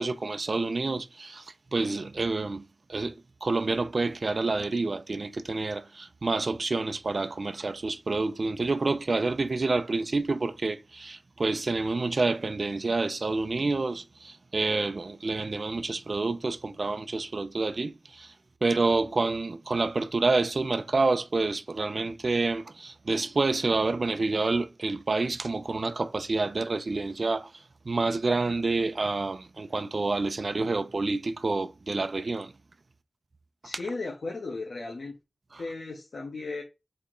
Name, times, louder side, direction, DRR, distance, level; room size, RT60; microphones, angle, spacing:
voice 1, 0.0-2.6 2.9-3.1 3.4-18.3 18.6-32.5 35.5-35.6, right 3 dB, 60° right, 0.7 m, -28 dB
voice 2, 33.6-35.1 35.6-36.6, left 3 dB, 80° left, 1.5 m, -35 dB
6.6 x 4.2 x 3.9 m
cardioid pair, 50°, 0 cm